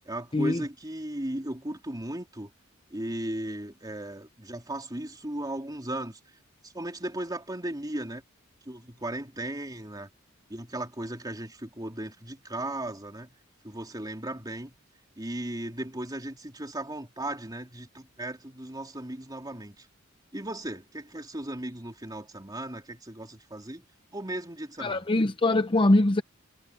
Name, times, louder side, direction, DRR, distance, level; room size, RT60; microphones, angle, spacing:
voice 1, 0.1-2.5 2.9-6.2 6.6-8.2 8.7-10.1 10.5-13.3 13.6-14.7 15.2-19.9 20.3-23.9 24.1-25.0, right 1 dB, 20° right, 3.5 m, -36 dB
voice 2, 24.8-26.2, left 2 dB, 25° left, 0.6 m, -22 dB
head